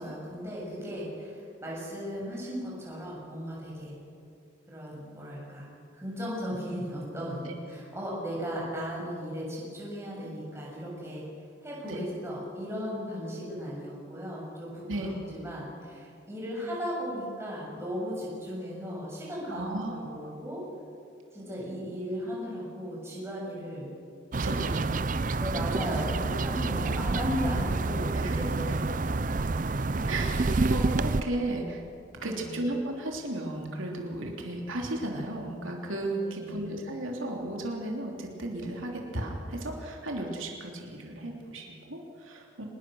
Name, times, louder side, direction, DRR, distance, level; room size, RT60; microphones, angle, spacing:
voice 1, 0.0-3.9 4.7-5.7 5.9-11.2 11.6-20.6 21.3-23.9 24.6-24.9 25.4-29.1 32.2-32.6 36.1-36.7, equal, 15° right, -4 dB, 7.0 m, -36 dB
voice 2, 19.5-20.3 24.3-25.4 26.7-27.4 28.1-28.7 30.1-31.8 32.2-42.7, right 1 dB, 90° right, 0 dB, 3.3 m, -35 dB
sound 1, 24.3-31.2, right 3 dB, 40° right, 0.5 m, -28 dB
25.5 x 20.5 x 6.4 m, 2.4 s
head